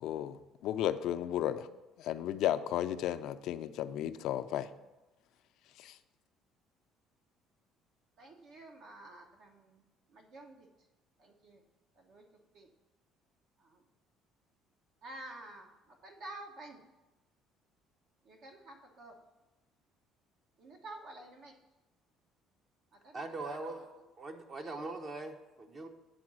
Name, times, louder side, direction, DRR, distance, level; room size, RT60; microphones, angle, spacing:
voice 1, 0.0-1.7 2.0-4.7 5.8-5.9, left 11 dB, 70° left, 11 dB, 0.4 m, -34 dB
voice 2, 8.2-9.8 10.1-10.7 11.2-11.6 12.0-12.2 12.5-12.7 13.6-13.8 15.0-15.7 16.0-16.8 18.2-19.2 20.6-21.5 22.9-23.8 24.6-24.8, right 2 dB, 65° right, 2 dB, 1.0 m, -50 dB
voice 3, 23.1-23.8 24.2-25.9, right 3 dB, 40° right, 4 dB, 0.8 m, -41 dB
8.7 x 3.8 x 6.2 m, 1.1 s
supercardioid pair, 85°, 0 cm